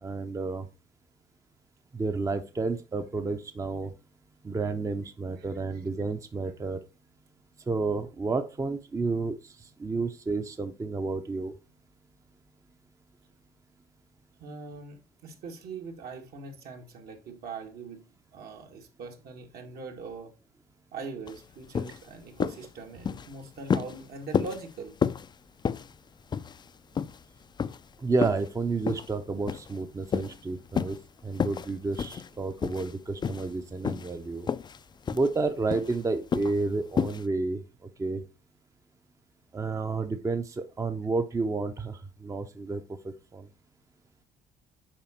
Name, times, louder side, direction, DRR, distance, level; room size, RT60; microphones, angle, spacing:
voice 1, 0.0-0.7 1.9-3.9 4.4-6.8 7.7-9.5 9.8-11.5 28.0-31.0 31.2-34.5 35.1-37.6 38.0-38.2 39.5-42.8 43.3-43.5, right 3 dB, 20° right, 0.6 m, -30 dB
voice 2, 14.4-18.0 18.3-20.3 20.9-24.9, right 4 dB, 65° right, 1.9 m, -41 dB
sound 1, 21.3-21.4 21.7-22.0 22.4-22.7 23.0-23.3 23.7-24.0 24.3-24.6 25.0-25.3 25.6-25.9 26.3-26.7 27.0-27.2 27.6-27.8 28.2-28.5 28.9-29.1 29.5-29.8 30.1-30.4 30.7-31.0 31.4-31.7 32.0-32.3 32.6-32.9 33.2-33.5 33.8-34.2 34.5-34.8 35.1-35.3 35.7-36.0 36.3-36.6 37.0-37.2, left 6 dB, 25° left, 0.3 m, -30 dB
7.4 x 5.0 x 4.3 m
cardioid pair, 110°, 17 cm